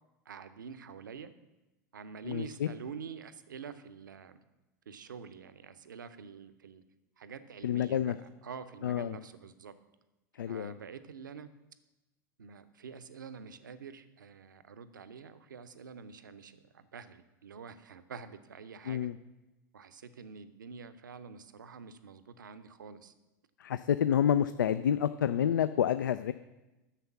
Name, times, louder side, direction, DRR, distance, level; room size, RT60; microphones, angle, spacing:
voice 1, 0.3-1.3 1.9-4.4 4.9-6.8 7.2-9.7 10.4-11.5 12.4-19.1 19.7-23.1, right 6 dB, 80° right, 13 dB, 0.7 m, -47 dB
voice 2, 2.2-2.7 7.6-8.2 8.8-9.2 10.4-10.7 18.9-19.2 23.6-26.3, left 9 dB, 75° left, 13 dB, 0.4 m, -29 dB
10.0 x 7.1 x 5.9 m, 1.0 s
figure-of-eight pair, 85°, 10 cm